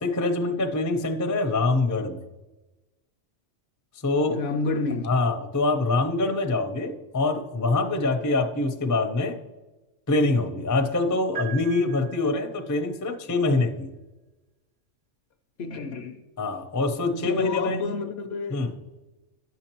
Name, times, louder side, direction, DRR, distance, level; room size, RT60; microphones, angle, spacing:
voice 1, 0.0-2.2 4.0-4.4 5.0-9.4 10.1-13.9 16.4-17.8 18.5-18.7, left 2 dB, 20° left, 0.4 m, -25 dB
voice 2, 4.3-5.1 15.6-16.2 17.1-18.7, left 3 dB, 65° left, 0.8 m, -29 dB
sound 1, 11.3-12.7, right 9 dB, 75° right, 1.3 m, -38 dB
10.5 x 7.0 x 3.0 m
omnidirectional pair, 1.3 m